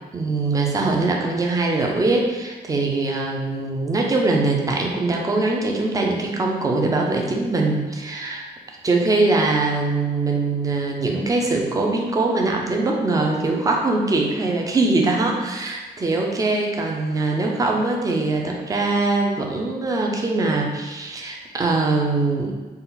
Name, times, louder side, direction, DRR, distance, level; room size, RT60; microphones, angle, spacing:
voice 1, 0.1-8.4 8.8-22.5, right 3 dB, 20° right, 0 dB, 0.4 m, -22 dB
4.0 x 2.3 x 3.8 m, 1.3 s
wide cardioid pair, 170°, 18 cm